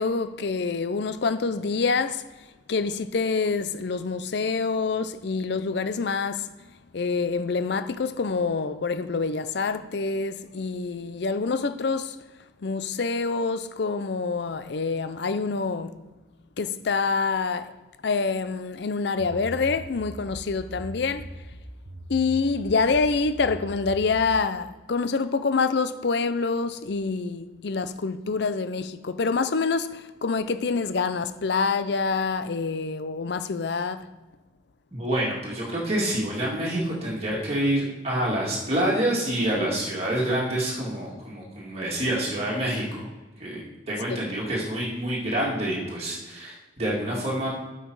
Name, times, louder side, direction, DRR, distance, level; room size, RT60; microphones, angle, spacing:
voice 1, 0.0-2.3 2.7-6.7 6.9-12.2 12.6-16.0 16.6-17.7 18.0-21.3 22.1-34.1, left 4 dB, 60° left, 0.5 m, -26 dB
sound 1, 19.2-24.4, right 1 dB, 50° right, 0.9 m, -40 dB
voice 2, 34.9-43.1 43.4-47.5, right 1 dB, 35° right, 2.2 m, -27 dB
8.3 x 5.7 x 4.8 m
head